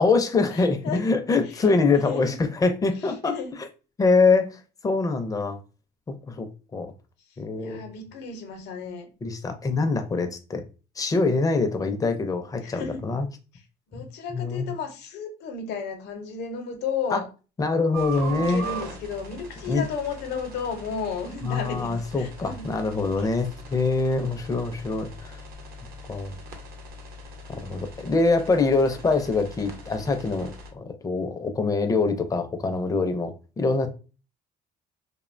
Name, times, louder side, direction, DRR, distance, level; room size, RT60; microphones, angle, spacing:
voice 1, 0.0-3.4 4.0-5.6 6.3-6.5 6.7-6.9 7.4-7.9 9.2-10.6 11.0-13.3 14.3-14.7 17.1-17.2 17.6-18.6 19.7-19.9 21.4-25.4 26.1-26.4 27.5-33.9, left 3 dB, 20° left, 0.4 m, -24 dB
voice 2, 0.5-1.0 1.5-2.4 3.0-3.6 7.6-9.1 12.6-13.1 13.5-13.6 13.9-17.3 18.3-22.7, left 5 dB, 85° left, 0.7 m, -33 dB
sound 1, 17.9-30.7, right 2 dB, 65° right, 0.7 m, -40 dB
2.6 x 2.1 x 2.5 m
cardioid pair, 110°, 17 cm